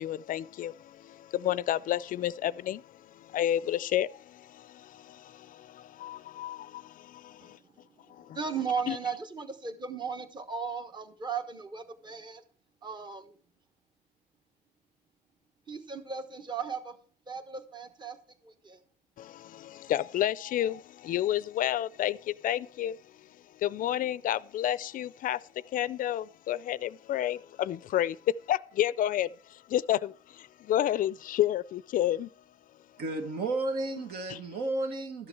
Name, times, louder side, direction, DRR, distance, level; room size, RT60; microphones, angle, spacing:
voice 1, 0.0-7.6 8.1-8.4 8.9-9.0 19.2-23.3 23.5-28.2 28.5-32.3 34.3-34.4, left 12 dB, 55° left, 0.4 m, -31 dB
voice 2, 8.3-12.4 12.8-13.3 15.7-17.0 17.3-18.2 18.4-18.8, right 6 dB, 25° right, 1.3 m, -36 dB
voice 3, 33.0-35.3, right 2 dB, 70° right, 1.9 m, -32 dB
12.5 x 7.0 x 4.7 m
cardioid pair, 110°, 17 cm